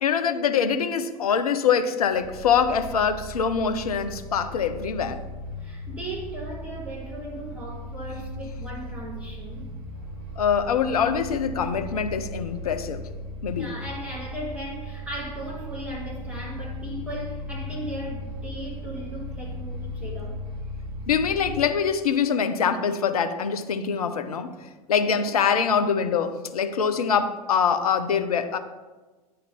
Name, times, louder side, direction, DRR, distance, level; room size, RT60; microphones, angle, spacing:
voice 1, 0.0-5.2 10.4-13.0 13.4-13.7 21.1-24.5 24.9-28.6, left 7 dB, 70° left, 9 dB, 0.7 m, -24 dB
sound 1, 2.1-21.6, equal, 50° right, 2.0 m, -37 dB
voice 2, 5.6-9.7 13.5-20.4 25.1-25.3, right 1 dB, 5° right, -7 dB, 3.1 m, -37 dB
9.4 x 3.8 x 6.9 m, 1.3 s
figure-of-eight pair, 85°, 20 cm